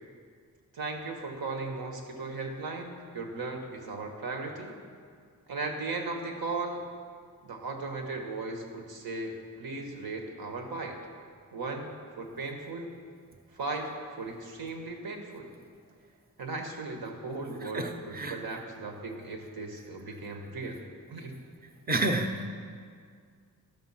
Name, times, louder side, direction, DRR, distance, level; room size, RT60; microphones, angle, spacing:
voice 1, 0.7-4.8 5.5-6.8 7.4-11.0 11.5-11.9 12.2-12.9 13.5-15.5 16.4-20.8 21.1-21.4, right 3 dB, 85° right, 2 dB, 1.5 m, -37 dB
voice 2, 17.6-18.4 21.9-22.5, right 2 dB, 25° right, 4 dB, 0.7 m, -30 dB
12.5 x 7.1 x 5.7 m, 2.1 s
wide cardioid pair, 180°, 35 cm